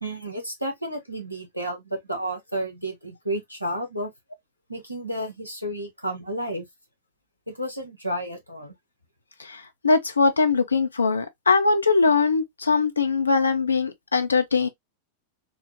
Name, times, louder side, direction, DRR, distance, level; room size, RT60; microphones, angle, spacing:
voice 1, 0.0-4.1 4.7-6.6 7.5-8.7, right 1 dB, 90° right, 1.0 m, -31 dB
voice 2, 9.4-14.7, left 4 dB, 75° left, 0.6 m, -21 dB
4.0 x 2.1 x 2.9 m
figure-of-eight pair, 90°, 0 cm